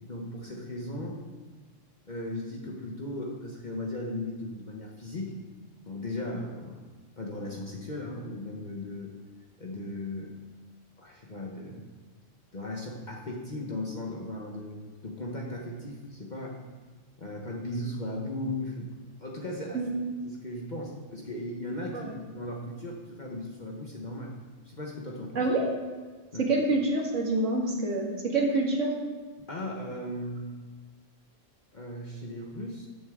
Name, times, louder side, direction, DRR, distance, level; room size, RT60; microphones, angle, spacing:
voice 1, 0.0-1.2 2.1-5.3 5.9-6.8 7.2-9.1 9.6-10.3 11.0-11.8 12.5-16.6 17.2-18.9 19.2-19.8 20.2-24.3 24.6-25.4 26.3-26.4 29.4-30.5 31.7-32.9, left 1 dB, 40° left, -1 dB, 1.1 m, -37 dB
voice 2, 25.4-25.7 26.4-28.9, right 2 dB, 70° right, -1 dB, 2.1 m, -27 dB
13.5 x 7.9 x 3.7 m, 1.4 s
omnidirectional pair, 1.3 m